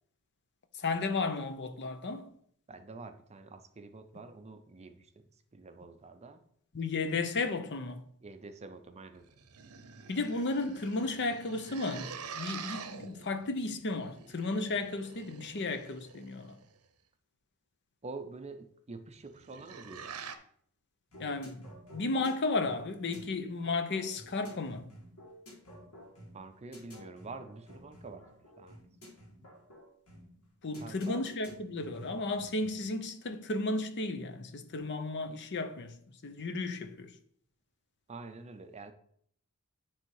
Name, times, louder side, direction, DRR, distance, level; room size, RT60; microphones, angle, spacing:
voice 1, 0.7-2.3 6.7-8.0 10.1-16.6 21.2-21.7 21.9-24.9 30.6-36.0 36.2-37.1, left 3 dB, 50° left, 0.7 m, -34 dB
voice 2, 2.7-6.4 8.2-9.3 18.0-20.2 26.3-28.8 30.8-31.2 38.1-38.9, right 3 dB, 30° right, 0.5 m, -47 dB
sound 1, 9.1-16.8 19.2-20.4, right 6 dB, 75° right, 0.7 m, -47 dB
sound 2, 21.1-32.9, equal, 80° left, 2.1 m, -52 dB
9.5 x 3.5 x 4.7 m
head